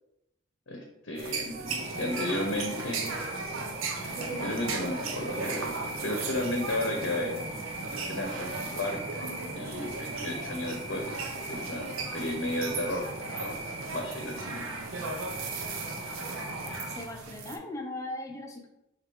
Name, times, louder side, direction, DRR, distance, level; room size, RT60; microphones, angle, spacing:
voice 1, 0.7-1.7 2.0-3.1 4.3-7.4 7.9-9.0 9.5-11.2 11.5-13.1 13.4-13.6 13.9-14.6, left 1 dB, 70° left, 2 dB, 0.7 m, -33 dB
sound 1, 1.2-17.6, right 3 dB, 85° right, 0.6 m, -37 dB
sound 2, 1.7-17.1, right 2 dB, 30° right, 0.7 m, -40 dB
voice 2, 16.5-18.7, left 2 dB, 15° left, 2 dB, 0.5 m, -39 dB
6.1 x 2.4 x 3.5 m, 0.88 s
head